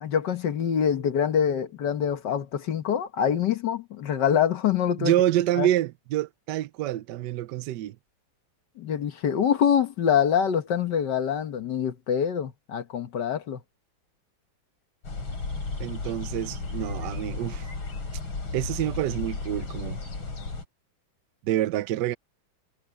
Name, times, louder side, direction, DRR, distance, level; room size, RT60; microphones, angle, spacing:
voice 1, 0.0-5.1 5.6-5.7 8.8-13.6, left 8 dB, 60° left, 1.7 m, -25 dB
voice 2, 5.0-8.0 15.8-17.7 18.5-20.0 21.4-22.2, right 13 dB, 70° right, 1.1 m, -27 dB
sound 1, 15.0-20.7, left 3 dB, 80° left, 5.2 m, -34 dB
omnidirectional pair, 2.2 m